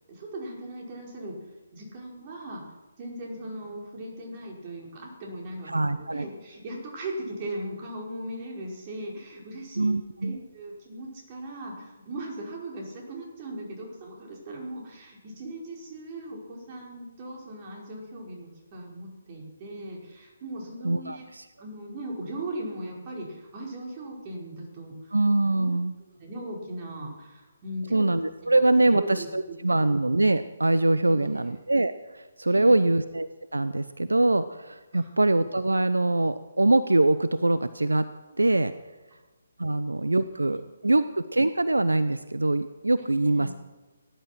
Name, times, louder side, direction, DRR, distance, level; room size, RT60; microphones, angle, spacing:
voice 1, 0.1-1.4 1.7-2.6 3.0-9.9 10.2-21.3 21.6-25.2 25.5-25.7 26.0-28.1 28.4-29.3 29.7-29.9 31.0-31.5 32.5-32.9 34.9-35.1 39.8-41.0 43.2-43.5, right 1 dB, 30° right, -1 dB, 5.1 m, -38 dB
voice 2, 5.7-6.3 9.8-10.4 20.8-21.2 25.1-25.9 27.9-38.1 38.4-38.7 39.6-43.5, right 2 dB, 80° right, 13 dB, 0.7 m, -23 dB
18.5 x 11.5 x 6.0 m, 1.2 s
figure-of-eight pair, 140°, 0 cm